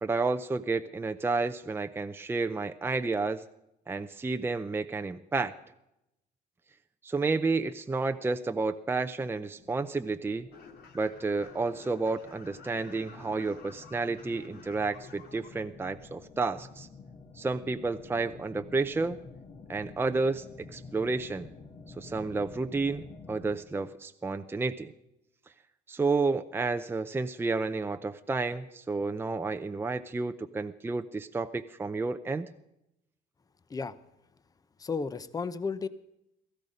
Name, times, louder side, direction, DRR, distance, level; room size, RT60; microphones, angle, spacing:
voice 1, 0.0-3.4 3.9-5.5 7.0-10.5 10.9-16.9 17.4-19.2 19.7-20.4 20.7-21.5 22.0-24.9 25.9-32.5, right 3 dB, 15° right, 8 dB, 0.6 m, -31 dB
sound 1, 9.5-23.6, left 4 dB, 45° left, 2.0 m, -50 dB
sound 2, 10.5-15.5, left 5 dB, 70° left, 2.5 m, -51 dB
voice 2, 34.8-35.9, left 5 dB, 20° left, 14 dB, 0.8 m, -33 dB
17.0 x 14.5 x 5.1 m, 0.85 s
cardioid pair, 110°, 17 cm